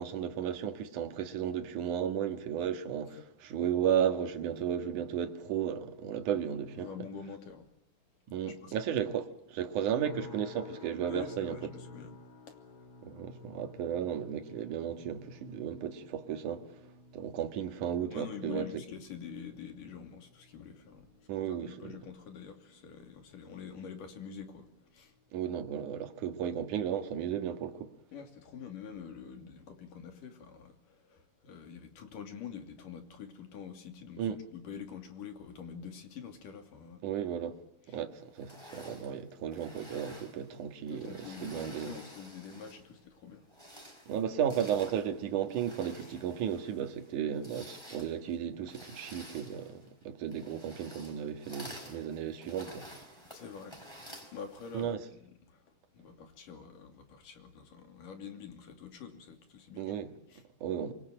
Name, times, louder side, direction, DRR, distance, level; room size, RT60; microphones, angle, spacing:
voice 1, 0.0-6.9 8.3-11.6 13.0-16.6 17.1-18.7 21.3-21.9 25.3-27.9 34.2-34.4 37.0-37.6 37.9-41.9 44.1-52.9 54.7-55.0 59.8-60.1 60.6-60.9, right 9 dB, 65° right, 3.2 m, -34 dB
voice 2, 6.8-7.7 8.5-8.7 11.0-12.1 12.5-12.6 18.1-21.1 21.5-24.7 24.9-25.1 28.1-37.0 37.9-38.0 40.9-43.5 46.0-46.1 53.3-53.8 54.3-55.6 55.9-59.9 60.3-60.4, left 7 dB, 70° left, 4.3 m, -46 dB
sound 1, 10.0-25.3 25.6-26.0 26.5-26.7, left 3 dB, 30° left, 3.1 m, -54 dB
sound 2, 38.4-42.9 43.4-54.9, equal, 5° left, 5.3 m, -51 dB
26.0 x 24.0 x 9.0 m
omnidirectional pair, 3.9 m